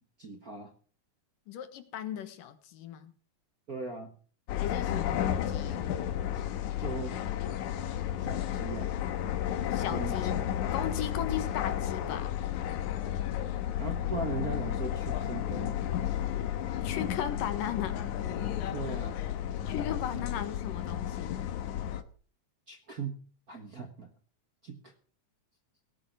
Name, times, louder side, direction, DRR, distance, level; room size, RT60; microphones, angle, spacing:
voice 1, 0.2-0.7 3.7-4.1 6.8-7.1 8.2-9.0 9.9-10.4 13.7-16.0 18.7-19.2 22.7-23.2 23.5-24.1 24.6-24.9, right 4 dB, 45° right, 5 dB, 1.2 m, -39 dB
voice 2, 1.5-3.1 4.5-5.8 9.7-10.4 10.7-12.3 16.8-18.0 19.7-21.4, left 9 dB, 90° left, 10 dB, 3.1 m, -37 dB
sound 1, 4.5-22.0, left 10 dB, 70° left, 2.4 m, -32 dB
18.0 x 8.0 x 6.3 m, 0.41 s
omnidirectional pair, 3.7 m